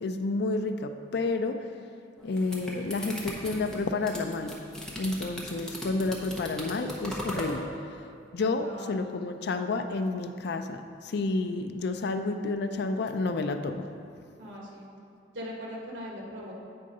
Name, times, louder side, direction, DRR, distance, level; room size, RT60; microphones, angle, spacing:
voice 1, 0.0-1.6 2.2-4.5 4.9-7.7 8.3-13.9, left 3 dB, 60° left, 7 dB, 0.4 m, -30 dB
sound 1, 2.2-7.6, equal, 5° left, 0.8 m, -38 dB
voice 2, 8.5-9.1 14.4-14.9 15.3-16.5, equal, 80° right, -3 dB, 1.5 m, -40 dB
8.7 x 3.7 x 5.3 m, 2.5 s
head